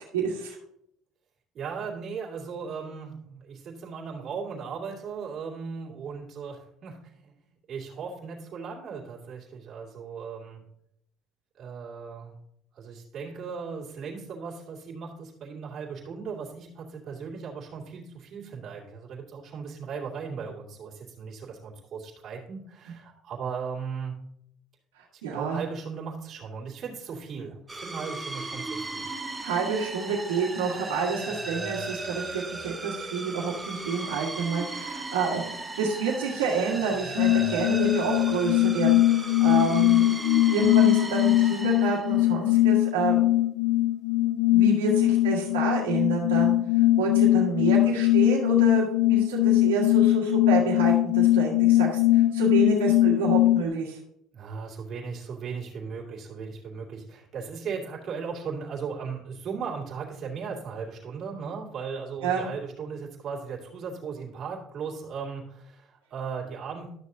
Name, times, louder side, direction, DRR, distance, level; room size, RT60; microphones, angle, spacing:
voice 1, 0.1-0.6 25.2-25.6 29.4-35.4 35.8-40.1 40.5-43.3 44.5-46.5 47.0-54.0 62.2-62.4, right 4 dB, 90° right, -6 dB, 1.6 m, -28 dB
voice 2, 1.5-7.3 7.7-10.6 11.6-12.3 12.7-24.2 25.1-29.1 54.3-66.9, right 5 dB, 50° right, -4 dB, 2.5 m, -37 dB
sound 1, 27.7-42.4, right 2 dB, 15° right, 1.2 m, -36 dB
sound 2, 37.2-53.7, left 16 dB, 70° left, 0.7 m, -21 dB
11.5 x 6.3 x 2.7 m, 0.76 s
hypercardioid pair, 75°, 0 cm